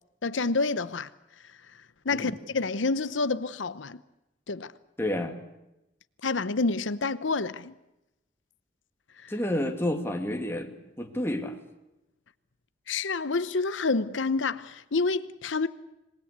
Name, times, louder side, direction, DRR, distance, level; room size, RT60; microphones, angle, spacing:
voice 1, 0.2-1.1 2.0-4.0 4.5-4.7 6.2-7.7 9.2-9.3 12.9-15.7, left 3 dB, 90° left, 0.9 m, -28 dB
voice 2, 5.0-5.3 9.3-11.6, left 1 dB, 15° left, 2.3 m, -30 dB
26.5 x 20.0 x 8.2 m
head